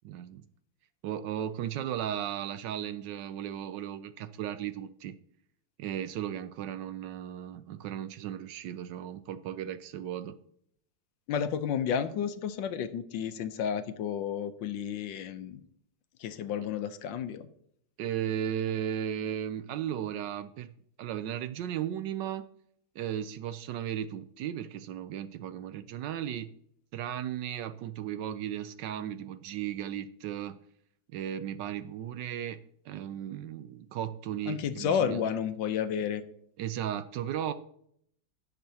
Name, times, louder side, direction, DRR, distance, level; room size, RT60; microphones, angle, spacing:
voice 1, 0.0-0.4 1.0-5.2 5.8-10.4 18.0-20.7 21.0-22.5 23.0-26.5 26.9-30.6 31.1-35.2 36.6-37.5, right 10 dB, 75° right, 12 dB, 1.1 m, -35 dB
voice 2, 11.3-15.6 16.2-17.5 34.5-36.2, left 8 dB, 75° left, 11 dB, 1.4 m, -31 dB
16.5 x 6.8 x 2.8 m, 0.70 s
omnidirectional pair, 2.1 m